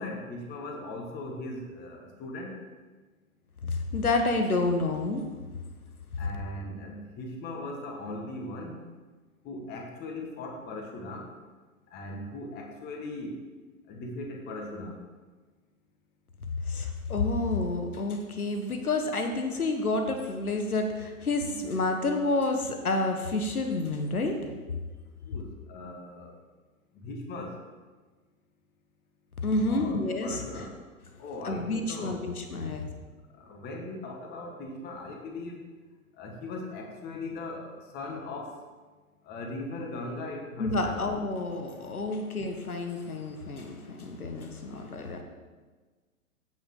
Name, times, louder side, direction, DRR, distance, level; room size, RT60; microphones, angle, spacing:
voice 1, 0.0-2.6 6.2-8.8 9.4-11.3 11.9-13.4 13.9-15.0 25.2-26.4 27.0-27.5 29.7-30.7 31.2-32.3 33.4-35.6 36.2-38.5 39.2-41.0, left 2 dB, 25° left, 2 dB, 1.5 m, -39 dB
voice 2, 3.6-5.2 16.7-24.5 29.4-30.4 31.4-32.8 40.6-45.2, left 2 dB, 85° left, 5 dB, 1.3 m, -29 dB
15.0 x 5.4 x 3.8 m, 1.4 s
figure-of-eight pair, 120°, 43 cm